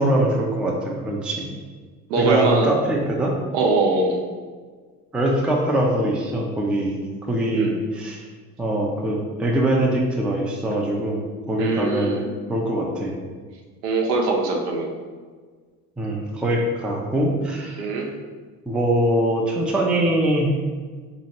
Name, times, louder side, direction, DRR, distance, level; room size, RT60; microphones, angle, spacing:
voice 1, 0.0-1.5 2.2-3.3 5.1-6.9 7.3-8.3 8.6-11.2 11.5-13.1 16.0-17.9 18.7-20.5, right 1 dB, ahead, -1 dB, 0.4 m, -22 dB
voice 2, 2.1-2.7 3.5-4.2 7.5-7.7 11.6-12.3 13.8-14.9 17.8-18.1, right 3 dB, 75° right, 1 dB, 0.8 m, -22 dB
4.1 x 3.0 x 2.8 m, 1.5 s
figure-of-eight pair, 60°, 46 cm